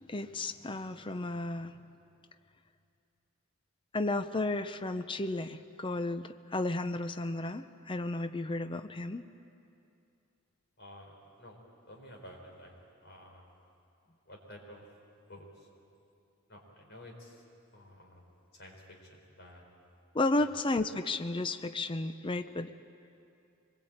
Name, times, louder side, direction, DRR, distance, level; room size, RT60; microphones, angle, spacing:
voice 1, 0.1-1.7 3.9-9.2 20.1-22.7, left 2 dB, 25° left, 10 dB, 0.6 m, -33 dB
voice 2, 10.8-11.6 11.9-12.7 13.0-13.5 14.3-14.8 15.3-15.5 16.5-17.4 17.7-18.3 18.6-19.6 20.4-20.5, left 1 dB, 50° left, 1 dB, 4.5 m, -51 dB
24.5 x 21.5 x 8.8 m, 2.6 s
head